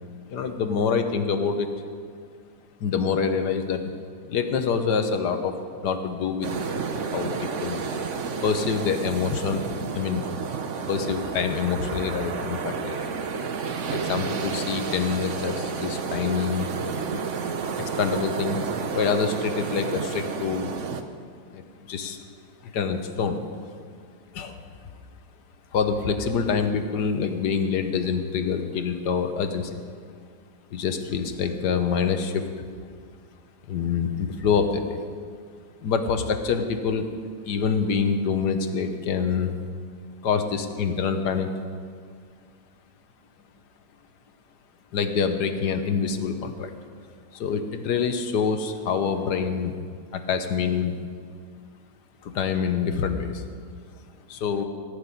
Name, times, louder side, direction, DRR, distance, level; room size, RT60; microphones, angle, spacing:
voice 1, 0.3-1.7 2.8-3.8 4.2-5.6 5.8-6.5 7.1-7.8 8.4-9.6 9.9-10.2 10.9-13.1 13.9-16.7 17.8-18.6 18.9-20.7 21.5-21.6 21.9-22.2 22.6-23.4 24.3-24.6 25.7-29.8 30.7-32.6 33.7-35.0 35.8-37.1 37.4-39.5 40.2-41.5 44.9-46.7 47.3-49.7 50.1-50.9 52.2-53.4 54.3-54.6, left 6 dB, 75° left, 7 dB, 1.5 m, -26 dB
sound 1, 6.4-21.0, right 5 dB, 55° right, 1.0 m, -31 dB
17.0 x 6.7 x 9.7 m, 2.1 s
omnidirectional pair, 1.9 m